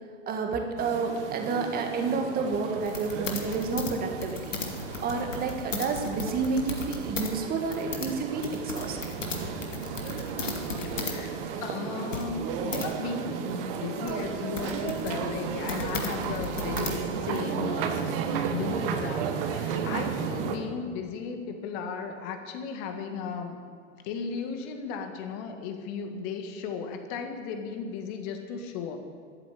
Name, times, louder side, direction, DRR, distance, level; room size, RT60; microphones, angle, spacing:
voice 1, 0.3-4.6 5.0-9.0, right 4 dB, 25° right, 4 dB, 1.6 m, -30 dB
sound 1, 0.8-20.6, right 7 dB, 45° right, 1.5 m, -34 dB
sound 2, 2.8-7.3 7.6-11.2 11.5-11.6 12.1-12.9 13.5-17.4, left 5 dB, 80° left, 2.2 m, -36 dB
voice 2, 10.8-23.6 24.0-29.0, left 6 dB, 45° left, 5 dB, 1.9 m, -36 dB
13.5 x 8.1 x 8.5 m, 2.2 s
figure-of-eight pair, 100°, 37 cm